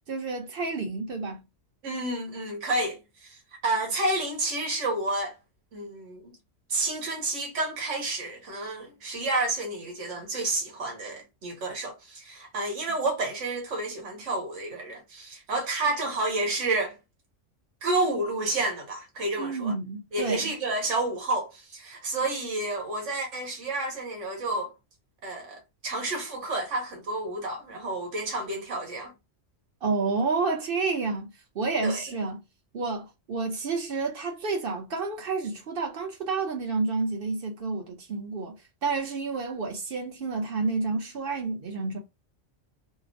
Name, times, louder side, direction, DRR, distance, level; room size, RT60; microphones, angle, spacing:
voice 1, 0.1-1.4 19.4-20.5 29.8-31.3 31.5-32.4 32.7-38.6 38.8-42.0, right 4 dB, 55° right, 0.9 m, -29 dB
voice 2, 1.8-3.4 3.6-5.3 5.7-6.3 6.7-17.0 17.8-19.7 20.1-24.7 25.2-29.1 31.8-32.0, right 2 dB, 80° right, 1.3 m, -30 dB
2.9 x 2.1 x 2.5 m
omnidirectional pair, 1.2 m